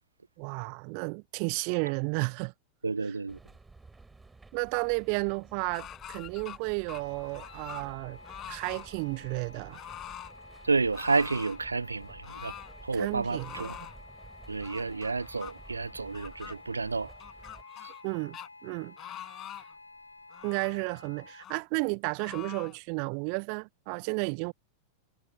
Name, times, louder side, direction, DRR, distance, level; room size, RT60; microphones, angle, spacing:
voice 1, 0.4-2.5 3.0-3.1 4.5-8.2 8.5-9.8 12.9-13.9 18.0-18.9 20.4-24.5, right 40 dB or more, 45° right, 0.5 m, -33 dB
voice 2, 2.8-3.4 10.6-12.5 12.8-13.8 14.5-17.1, right 4 dB, 80° right, 1.0 m, -30 dB
sound 1, 3.3-17.6, right 3 dB, 10° right, 4.6 m, -53 dB
sound 2, 5.7-6.6 6.9-7.9 8.2-8.9 9.7-10.3 10.9-11.6 12.2-12.7 13.3-14.0 14.6-15.5 16.1-16.6 17.2-18.1 18.3-18.5 19.0-19.8 20.3-20.8 21.4-21.6 22.2-22.8, left 11 dB, 30° left, 6.8 m, -44 dB
sound 3, 6.9-21.5, left 3 dB, 80° left, 2.8 m, -52 dB
figure-of-eight pair, 90°, 0 cm